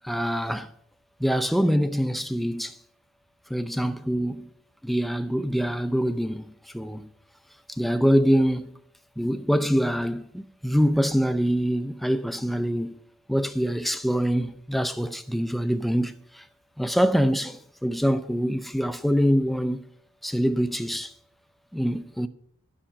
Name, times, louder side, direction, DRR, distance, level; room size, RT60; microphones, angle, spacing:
voice 1, 0.0-0.7 1.2-2.8 3.5-4.5 4.8-7.1 7.7-8.8 9.2-13.0 13.3-16.5 16.8-19.8 20.2-21.1 21.7-22.3, equal, ahead, 0.4 m, -25 dB
10.0 x 6.9 x 8.7 m
head